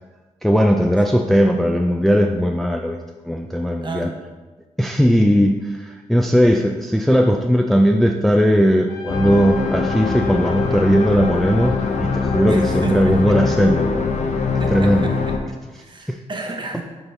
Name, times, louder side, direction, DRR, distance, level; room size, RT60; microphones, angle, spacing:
voice 1, 0.4-4.1 4.8-14.2 14.7-15.1 16.1-16.2, equal, ahead, 3 dB, 0.3 m, -18 dB
voice 2, 3.8-4.2 12.5-13.5 14.6-16.8, right 3 dB, 35° right, 3 dB, 0.9 m, -32 dB
Trumpet, 8.9-13.6, left 7 dB, 30° left, 1.2 m, -38 dB
sound 1, 9.1-15.4, left 4 dB, 60° left, 0.7 m, -22 dB
6.7 x 4.3 x 3.3 m, 1.2 s
cardioid pair, 95°, 13 cm